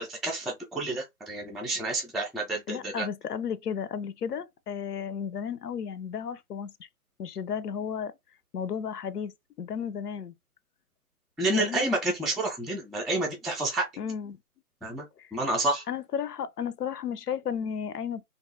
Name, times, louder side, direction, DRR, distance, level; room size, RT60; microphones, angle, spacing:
voice 1, 0.0-3.1 11.4-13.9 14.8-15.0 15.3-15.8, right 2 dB, ahead, 0.4 m, -29 dB
voice 2, 2.7-6.9 7.2-8.1 8.5-9.3 9.6-10.3 11.6-11.9 14.0-14.4 15.2-15.3 15.9-18.2, left 7 dB, 90° left, 0.5 m, -33 dB
2.5 x 2.2 x 2.6 m
figure-of-eight pair, 165°, 45 cm